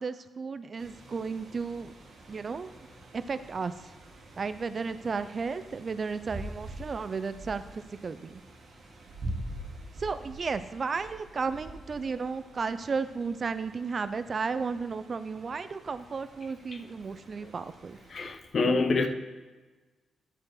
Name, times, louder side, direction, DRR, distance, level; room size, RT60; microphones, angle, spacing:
voice 1, 0.0-1.9 2.3-2.8 3.1-3.9 4.4-8.4 10.0-18.0, right 5 dB, 40° right, 12 dB, 0.3 m, -34 dB
sound 1, 0.8-18.3, right 1 dB, 55° right, 1.6 m, -46 dB
voice 2, 18.1-19.1, left 3 dB, 45° left, 6 dB, 0.7 m, -27 dB
9.6 x 4.7 x 4.7 m, 1.3 s
cardioid pair, 130°, 0 cm